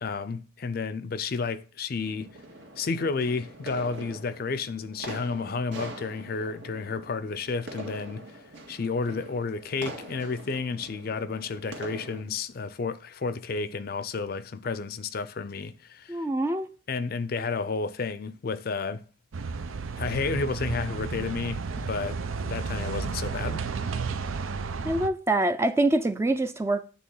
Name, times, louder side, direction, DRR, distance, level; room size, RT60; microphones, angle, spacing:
voice 1, 0.0-2.3 2.8-8.3 8.7-16.2 16.9-19.0 20.0-22.2 22.4-23.6, left 4 dB, 50° left, 0.5 m, -31 dB
sound 1, 2.0-12.2, right 1 dB, 70° right, 1.6 m, -43 dB
voice 2, 16.1-16.7 24.9-26.8, right 2 dB, 15° right, 0.4 m, -25 dB
sound 2, 19.3-25.1, right 4 dB, 90° right, 0.6 m, -32 dB
8.6 x 3.4 x 5.5 m
head